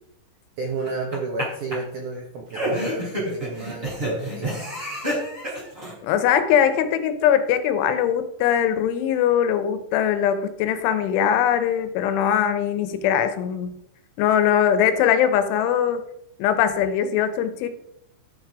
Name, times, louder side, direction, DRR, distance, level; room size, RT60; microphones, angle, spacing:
voice 1, 0.6-4.6, right 3 dB, 85° right, 1 dB, 1.7 m, -31 dB
sound 1, 0.8-1.4 1.7-1.8 2.5-5.9, equal, 15° right, 3.4 m, -28 dB
voice 2, 6.0-13.8 14.2-16.0 16.4-17.7, left 9 dB, 80° left, 11 dB, 3.3 m, -21 dB
12.0 x 6.4 x 4.8 m, 0.77 s
omnidirectional pair, 5.5 m